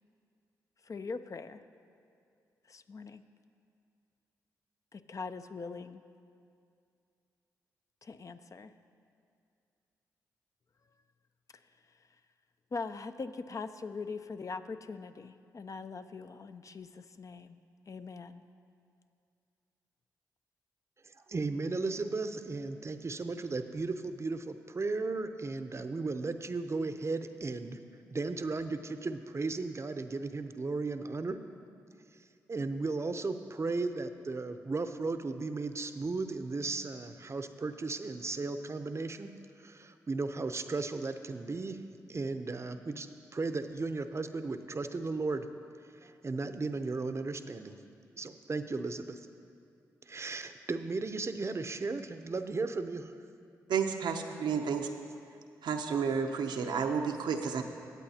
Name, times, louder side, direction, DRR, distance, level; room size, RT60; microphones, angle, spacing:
voice 1, 0.9-1.6 2.7-3.2 4.9-6.0 8.0-8.7 12.7-17.6 17.9-18.4, left 4 dB, 45° left, 10 dB, 0.5 m, -41 dB
voice 2, 21.0-27.8 28.1-31.4 32.5-39.3 39.6-41.8 42.1-45.5 46.0-47.8 48.1-49.2 50.1-53.1, right 3 dB, 35° right, 9 dB, 0.6 m, -35 dB
voice 3, 53.7-54.9 55.6-57.6, right 6 dB, 75° right, 4 dB, 0.7 m, -31 dB
17.5 x 8.1 x 2.8 m, 2.4 s
supercardioid pair, 45°, 8 cm